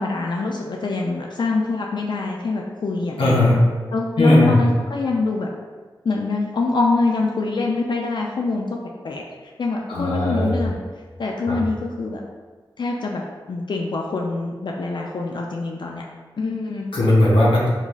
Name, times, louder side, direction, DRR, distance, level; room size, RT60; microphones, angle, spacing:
voice 1, 0.0-3.6 3.9-5.5 6.0-8.8 9.0-9.2 9.6-10.8 11.2-12.2 12.8-13.2 13.5-16.0 16.4-16.9, left 3 dB, 60° left, -1 dB, 0.4 m, -25 dB
voice 2, 3.2-3.6 4.2-4.6 9.9-10.6 11.5-11.6 16.9-17.7, left 1 dB, 90° left, -6 dB, 0.8 m, -17 dB
3.7 x 3.0 x 2.3 m, 1.4 s
cardioid pair, 55°, 9 cm